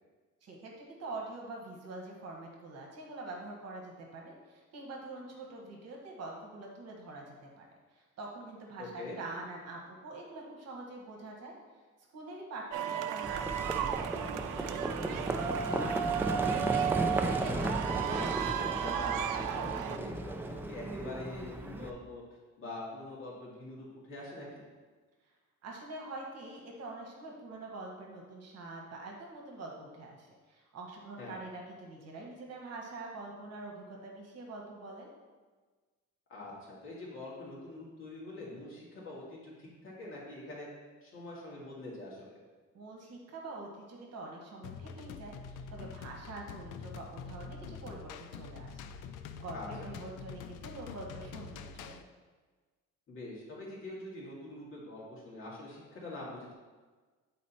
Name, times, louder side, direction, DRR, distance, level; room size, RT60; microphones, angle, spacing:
voice 1, 0.4-7.7 7.9-11.5 12.1-16.5 25.6-35.1 42.7-48.8 49.3-52.0, right 2 dB, 55° right, -1 dB, 1.4 m, -45 dB
voice 2, 8.8-9.2 17.4-22.2 22.6-24.6 31.2-31.4 36.3-40.7 41.0-42.4 49.5-49.9 53.1-56.5, left 2 dB, 40° left, -6 dB, 2.3 m, -44 dB
sound 1, 12.7-20.0, right 9 dB, 80° right, 0.5 m, -34 dB
Livestock farm animals working animals, 13.2-21.9, right 1 dB, 5° right, 0.3 m, -35 dB
sound 2, 44.6-52.0, left 6 dB, 80° left, 0.5 m, -45 dB
8.5 x 4.2 x 4.3 m, 1.4 s
cardioid pair, 160°, 31 cm